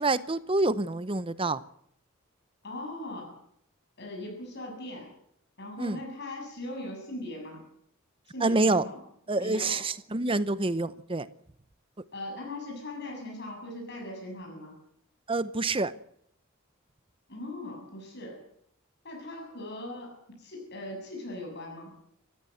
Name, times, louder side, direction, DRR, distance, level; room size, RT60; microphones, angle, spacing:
voice 1, 0.0-1.6 5.8-6.0 8.4-8.8 9.3-11.3 15.3-15.9, right 2 dB, 25° right, 0.8 m, -27 dB
voice 2, 2.6-3.4 4.0-5.1 5.6-7.6 8.3-9.0 9.3-9.8 12.1-14.7 17.3-18.4 19.0-21.9, left 1 dB, 55° left, 7.2 m, -39 dB
27.5 x 15.0 x 7.9 m
head